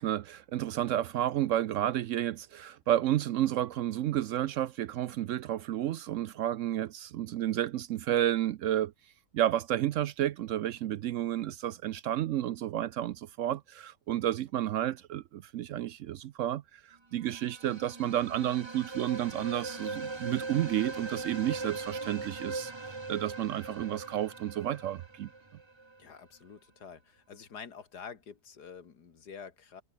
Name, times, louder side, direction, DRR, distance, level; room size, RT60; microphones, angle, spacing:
voice 1, 0.0-8.9 9.3-22.7 23.1-25.3, right 12 dB, 70° right, 0.8 m, -31 dB
sound 1, 17.2-26.0, right 3 dB, 20° right, 1.1 m, -40 dB
voice 2, 26.0-29.8, left 6 dB, 85° left, 2.5 m, -47 dB
omnidirectional pair, 1.7 m